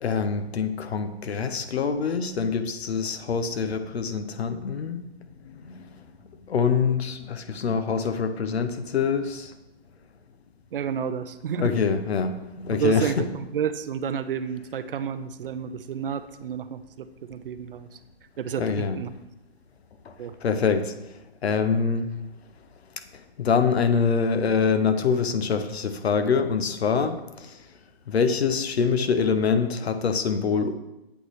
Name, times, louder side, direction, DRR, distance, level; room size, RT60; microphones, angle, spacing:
voice 1, 0.0-5.0 5.4-5.9 6.5-9.5 11.6-13.2 18.6-19.0 20.4-20.9 21.4-22.1 23.4-27.5 28.1-30.7, left 5 dB, 80° left, 9 dB, 0.7 m, -25 dB
voice 2, 10.7-11.7 12.7-17.9 18.4-19.1 20.2-20.4, right 7 dB, 60° right, 12 dB, 0.5 m, -30 dB
8.2 x 3.1 x 4.1 m, 0.94 s
hypercardioid pair, 155°, 32 cm